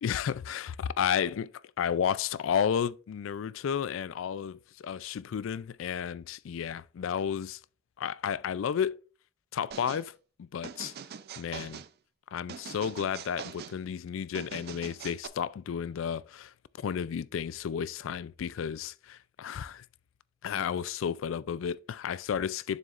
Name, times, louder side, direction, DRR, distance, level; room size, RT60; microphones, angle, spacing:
voice 1, 0.0-1.5 1.8-7.6 8.0-9.0 9.5-10.1 10.4-10.9 11.4-11.8 12.3-19.8 20.4-22.8, left 8 dB, 80° left, 0.3 m, -32 dB
sound 1, 9.7-10.1 10.6-11.9 12.5-13.8 14.3-15.3, right 7 dB, 55° right, 0.4 m, -43 dB
7.1 x 6.3 x 2.5 m
head